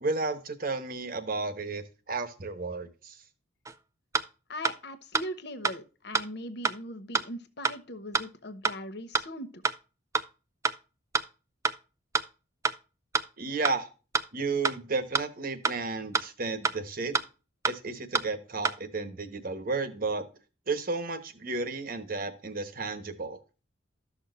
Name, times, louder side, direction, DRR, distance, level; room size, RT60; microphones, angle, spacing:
voice 1, 0.0-3.2 13.4-13.9 14.3-17.2 17.7-20.2 20.7-23.4, right 3 dB, 50° right, 11 dB, 1.1 m, -33 dB
sound 1, 3.7-3.8 4.1-4.3 4.6-4.8 5.1-5.3 5.6-5.8 6.1-6.3 6.6-6.8 7.1-7.3 7.6-7.8 8.1-8.3 8.6-8.8 9.1-9.3 9.6-9.8 10.1-10.3 10.6-10.8 11.1-11.3 11.6-11.8 12.1-12.3 12.6-12.8 13.1-13.3 13.6-13.8 14.1-14.3 14.6-14.8 15.1-15.3 15.6-15.8 16.1-16.3 16.6-16.8 17.1-17.3 17.6-17.8 18.1-18.3 18.6-18.8, right 4 dB, 15° right, 0.4 m, -26 dB
voice 2, 4.5-9.6, equal, 60° left, 11 dB, 1.0 m, -40 dB
13.5 x 6.2 x 2.5 m, 0.32 s
head